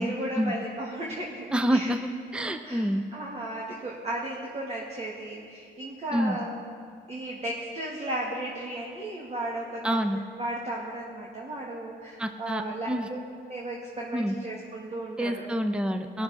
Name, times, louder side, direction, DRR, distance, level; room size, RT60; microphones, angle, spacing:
voice 1, 0.0-1.9 2.4-6.6 7.1-10.0 10.4-12.9 13.5-15.5 16.1-16.2, right 1 dB, 30° right, -4 dB, 1.8 m, -35 dB
voice 2, 1.5-3.0 6.1-6.4 9.8-10.2 12.2-13.1 14.1-14.3 15.2-16.2, equal, 5° right, 7 dB, 0.6 m, -27 dB
19.5 x 6.8 x 4.1 m, 2.1 s
cardioid pair, 90°, 20 cm